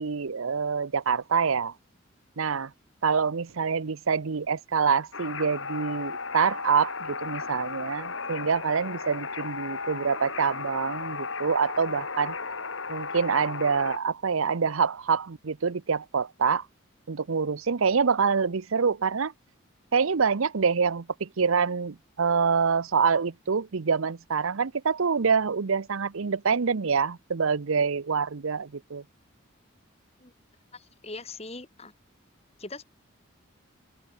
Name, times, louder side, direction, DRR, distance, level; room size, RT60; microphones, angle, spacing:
voice 1, 0.0-1.7 2.4-2.7 3.0-12.4 12.9-16.7 17.1-19.3 19.9-29.0, right 5 dB, 85° right, 0.7 m, -26 dB
sound 1, 5.1-14.0, left 4 dB, 70° left, 3.3 m, -35 dB
voice 2, 30.7-31.9 32.6-32.9, left 3 dB, 30° left, 2.9 m, -41 dB
open air
head